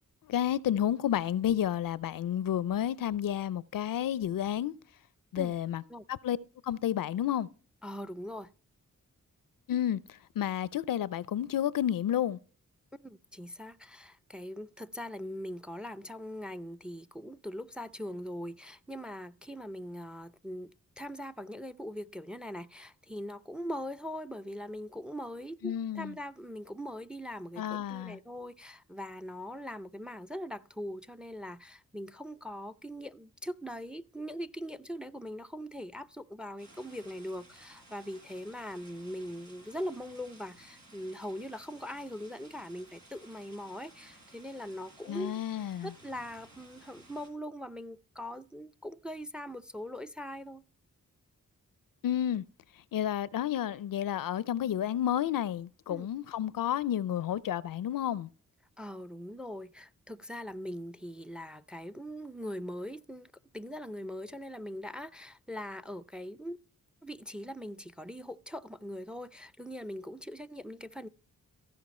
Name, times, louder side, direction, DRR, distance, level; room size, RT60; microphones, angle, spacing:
voice 1, 0.3-4.7 5.3-5.8 6.1-6.4 6.6-7.5 9.7-10.0 10.4-12.4 25.6-26.1 27.6-28.2 45.1-45.9 52.0-52.4 52.9-58.3, left 10 dB, 75° left, 0.5 m, -31 dB
voice 2, 7.8-8.5 12.9-45.4 45.8-50.6 55.9-56.1 58.8-66.6 67.0-71.1, equal, 5° right, 0.5 m, -41 dB
sound 1, 36.6-47.3, right 1 dB, 85° right, 3.9 m, -57 dB
15.0 x 5.1 x 4.2 m
cardioid pair, 50°, 34 cm